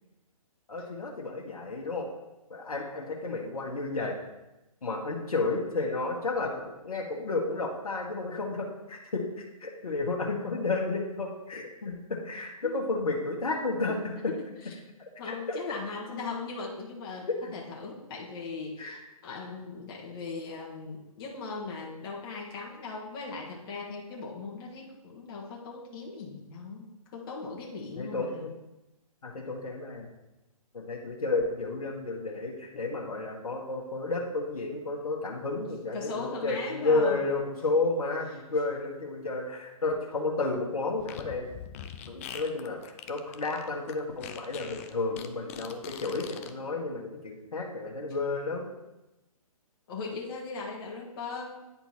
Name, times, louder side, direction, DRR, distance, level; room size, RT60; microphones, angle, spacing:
voice 1, 0.7-2.1 2.5-4.2 4.8-9.2 9.6-14.2 15.0-15.6 15.9-16.3 17.4-17.5 18.8-19.0 28.0-28.5 29.2-30.1 30.7-41.5 42.1-48.7, left 3 dB, 75° left, -1 dB, 1.5 m, -32 dB
voice 2, 14.4-14.7 15.2-28.5 35.9-37.2 49.9-51.6, left 4 dB, 40° left, -3 dB, 1.6 m, -39 dB
Fart, 41.0-46.5, left 9 dB, 25° left, 0.4 m, -43 dB
9.7 x 4.4 x 4.3 m, 0.97 s
figure-of-eight pair, 140°, 19 cm